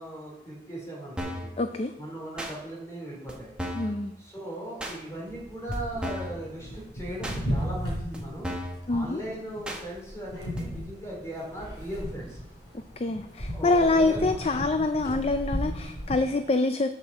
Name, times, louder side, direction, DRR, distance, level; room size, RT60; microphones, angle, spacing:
voice 1, 0.0-1.5 2.0-3.5 3.8-8.5 8.9-12.4 13.5-14.4, right 1 dB, 15° left, -4 dB, 4.0 m, -38 dB
sound 1, 1.2-1.5 2.4-2.5 3.3-3.4 3.6-3.9 4.8-5.0 5.7-5.8 6.0-6.4 7.2-7.4 8.1-8.2 8.4-8.8 9.6-9.8 10.6-10.7, equal, 5° right, 1.4 m, -34 dB
voice 2, 1.6-1.9 3.8-4.1 8.9-9.2 13.0-16.9, left 2 dB, 35° left, 8 dB, 0.4 m, -25 dB
sound 2, 5.3-16.1, equal, 70° left, 4.3 m, -35 dB
8.3 x 6.9 x 7.1 m, 0.88 s
head